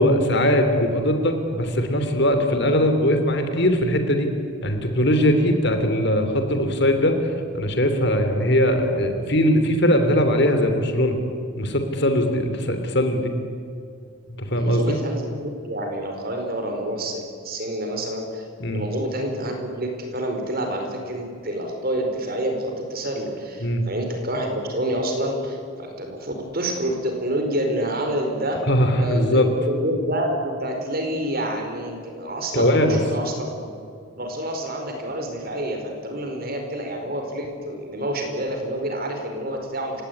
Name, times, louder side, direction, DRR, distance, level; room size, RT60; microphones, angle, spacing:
voice 1, 0.0-4.3 4.6-7.1 7.5-11.2 11.6-13.3 14.5-15.0 18.6-18.8 23.6-23.8 28.7-29.5 32.5-33.0, equal, 50° left, 6 dB, 3.2 m, -20 dB
voice 2, 14.5-28.6 29.0-33.7 34.2-40.0, right 1 dB, 45° right, 3 dB, 4.7 m, -28 dB
28.0 x 17.5 x 9.9 m, 2.4 s
head